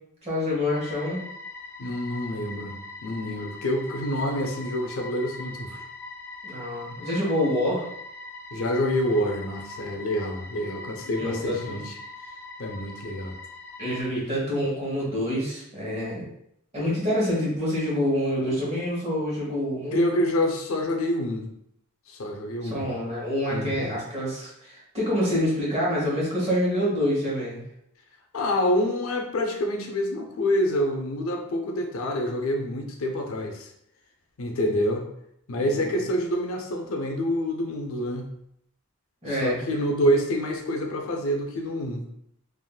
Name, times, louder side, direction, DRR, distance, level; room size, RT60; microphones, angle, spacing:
voice 1, 0.2-1.2 6.4-7.8 11.1-11.8 13.8-16.2 16.7-20.0 22.7-27.6 35.7-36.0 39.2-39.6, equal, 30° right, -6 dB, 1.1 m, -27 dB
sound 1, 0.7-14.0, left 3 dB, 10° left, 0.4 m, -42 dB
voice 2, 1.8-5.8 8.5-12.0 12.6-13.4 13.8-14.0 19.9-21.5 22.1-22.9 23.5-23.9 28.3-33.7 34.4-35.0 35.5-38.3 39.3-42.0, equal, 80° left, 3 dB, 0.5 m, -27 dB
3.5 x 2.5 x 2.3 m, 0.76 s
head